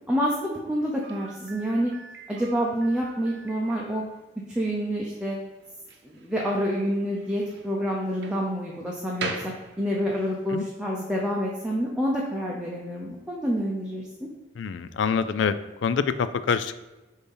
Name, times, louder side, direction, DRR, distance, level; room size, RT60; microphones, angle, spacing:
voice 1, 0.1-1.9 2.3-4.0 4.5-5.4 6.0-9.4 9.8-14.1, equal, 5° right, -3 dB, 0.6 m, -27 dB
Slam, 1.0-10.4, right 4 dB, 65° right, 0.8 m, -42 dB
voice 2, 14.6-15.6 15.8-16.8, left 6 dB, 75° left, 13 dB, 0.4 m, -25 dB
6.8 x 2.8 x 5.5 m, 1.1 s
head